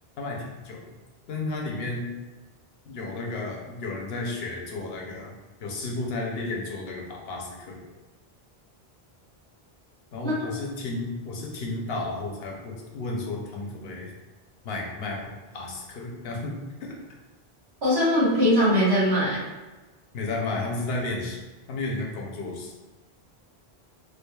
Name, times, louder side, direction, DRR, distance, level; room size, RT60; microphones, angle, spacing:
voice 1, 0.2-0.8 1.3-2.1 2.9-5.3 5.6-7.8 10.1-14.1 14.6-16.6 20.1-21.4 21.7-22.7, left 2 dB, 70° left, 0 dB, 0.9 m, -32 dB
voice 2, 17.8-19.4, equal, 80° right, -8 dB, 1.7 m, -21 dB
4.7 x 2.4 x 2.2 m, 1.2 s
omnidirectional pair, 1.1 m